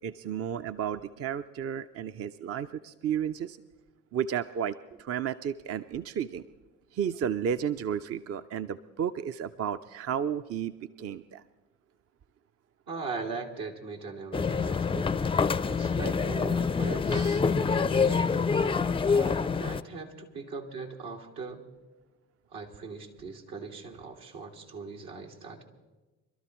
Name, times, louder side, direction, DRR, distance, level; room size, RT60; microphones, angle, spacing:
voice 1, 0.0-3.6 4.1-6.4 6.9-11.4 17.1-17.4, right 8 dB, 40° right, 11 dB, 0.5 m, -33 dB
voice 2, 12.9-15.1 15.7-18.3 19.1-21.6 22.5-25.6, right 4 dB, 75° right, 1 dB, 2.0 m, -40 dB
sound 1, 14.3-19.8, left 5 dB, 15° left, 0.4 m, -26 dB
25.5 x 12.5 x 3.0 m, 1.1 s
hypercardioid pair, 55°, 36 cm